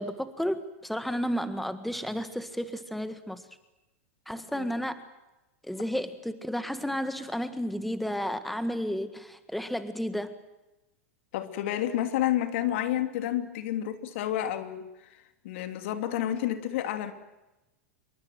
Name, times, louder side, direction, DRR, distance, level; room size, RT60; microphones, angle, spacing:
voice 1, 0.0-3.4 4.3-5.0 5.6-10.3, equal, ahead, 11 dB, 1.7 m, -32 dB
voice 2, 11.3-14.9 15.4-17.1, left 12 dB, 60° left, 8 dB, 2.8 m, -30 dB
27.0 x 23.5 x 7.8 m, 1.0 s
hypercardioid pair, 100°, 7 cm